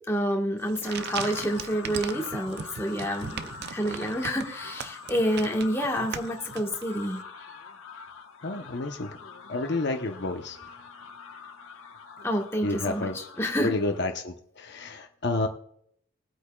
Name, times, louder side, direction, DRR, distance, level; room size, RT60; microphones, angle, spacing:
voice 1, 0.1-3.4 3.7-7.2 12.2-13.7, equal, 10° left, 0 dB, 1.4 m, -28 dB
sound 1, 0.6-7.1, right 7 dB, 50° right, 0.5 m, -39 dB
sound 2, 0.8-14.0, left 5 dB, 85° left, 1.2 m, -44 dB
voice 2, 8.4-9.1 9.5-10.6 12.6-13.2 13.6-15.5, left 2 dB, 55° left, 4 dB, 0.8 m, -30 dB
21.0 x 8.4 x 2.3 m, 0.69 s
head